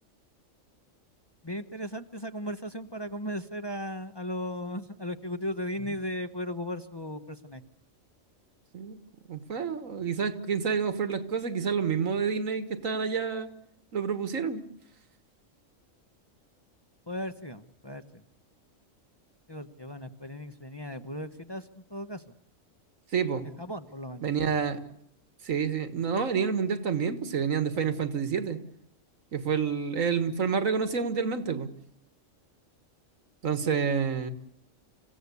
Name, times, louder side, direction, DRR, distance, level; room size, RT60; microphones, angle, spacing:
voice 1, 1.4-7.6 17.1-18.2 19.5-22.2 23.6-24.3, equal, 20° left, 8 dB, 0.9 m, -36 dB
voice 2, 9.3-13.5 13.9-14.6 23.1-23.5 24.2-24.8 25.4-28.6 29.3-31.7 33.4-34.3, right 6 dB, 85° right, 11 dB, 1.9 m, -28 dB
27.0 x 16.5 x 8.4 m, 0.74 s
omnidirectional pair, 1.3 m